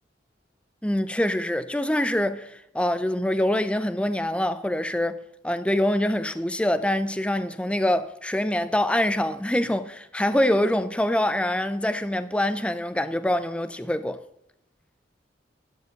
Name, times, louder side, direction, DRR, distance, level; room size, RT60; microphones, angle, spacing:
voice 1, 0.8-5.2 5.4-14.2, left 1 dB, 5° left, 0.5 m, -25 dB
12.5 x 8.1 x 5.3 m
head